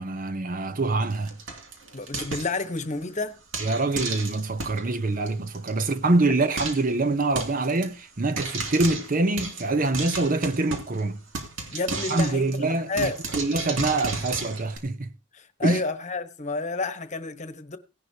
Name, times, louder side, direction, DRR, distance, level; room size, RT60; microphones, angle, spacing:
voice 1, 0.0-1.3 3.6-11.2 12.1-15.1 15.6-15.8, right 2 dB, 45° right, 0.8 m, -25 dB
Frying (food), 1.0-3.0 3.5-4.8 5.3-5.4 5.5-5.7 6.0-6.1 6.6-6.9 7.4-7.9 8.4-11.0 11.3-14.8, right 3 dB, 80° right, 2.6 m, -34 dB
voice 2, 1.9-3.4 11.7-13.2 15.3-17.8, left 3 dB, 40° left, 1.2 m, -30 dB
17.0 x 11.0 x 2.8 m
head